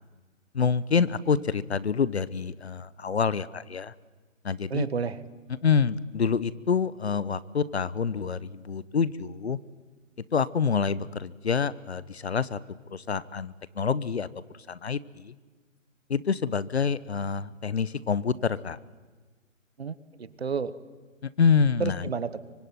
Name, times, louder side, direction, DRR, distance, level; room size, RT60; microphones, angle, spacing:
voice 1, 0.5-3.9 4.4-4.9 5.6-9.6 10.3-12.6 12.9-14.3 14.7-15.3 16.1-18.8 21.4-22.1, left 6 dB, 55° left, 18 dB, 1.0 m, -27 dB
voice 2, 4.7-5.2 19.8-20.7 21.8-22.4, right 6 dB, 55° right, 15 dB, 1.5 m, -31 dB
25.0 x 24.5 x 9.4 m, 1.4 s
hypercardioid pair, 175°, 39 cm